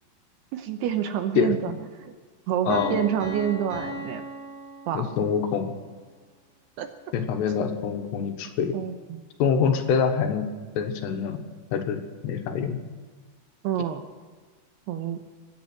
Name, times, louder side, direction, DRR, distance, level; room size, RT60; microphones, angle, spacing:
voice 1, 0.5-1.7 2.0-2.1 2.5-4.2 4.9-5.1 6.8-6.9 8.7-9.2 13.6-14.0 14.9-15.2, right 9 dB, 75° right, 8 dB, 2.7 m, -27 dB
voice 2, 2.7-3.1 4.9-5.7 7.1-8.7 9.4-10.5 10.8-11.4 11.7-12.8, left 7 dB, 75° left, 6 dB, 3.3 m, -25 dB
Piano, 2.7-5.5, right 1 dB, 45° right, 5.6 m, -37 dB
24.0 x 9.7 x 6.1 m, 1.5 s
omnidirectional pair, 5.1 m